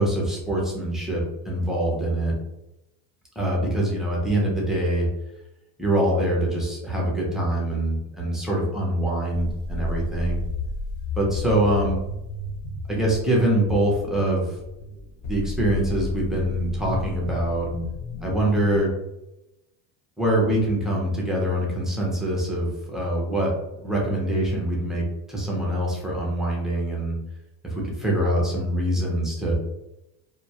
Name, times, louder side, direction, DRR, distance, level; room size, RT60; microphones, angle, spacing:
voice 1, 0.0-2.3 3.4-5.1 5.8-10.4 11.2-12.0 12.9-14.6 15.3-17.7 18.2-18.9 20.2-23.5 23.8-27.2 27.6-29.6, right 1 dB, ahead, -4 dB, 0.4 m, -24 dB
sound 1, 9.3-18.8, left 3 dB, 40° left, 0.8 m, -33 dB
2.3 x 2.1 x 2.7 m, 0.93 s
cardioid pair, 140°, 44 cm